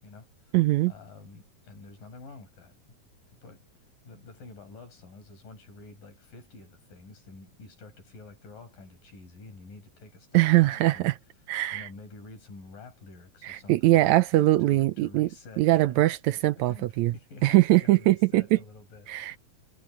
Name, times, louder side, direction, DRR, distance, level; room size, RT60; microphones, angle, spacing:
voice 1, 0.0-0.6 0.8-2.8 3.4-3.6 4.1-11.1 11.7-16.1 16.7-19.4, left 3 dB, 90° left, 7.2 m, -48 dB
voice 2, 0.5-0.9 10.3-11.1 11.5-11.9 13.4-15.3 15.6-17.1 17.4-18.6 19.1-19.4, right 17 dB, 80° right, 1.8 m, -22 dB
omnidirectional pair, 3.8 m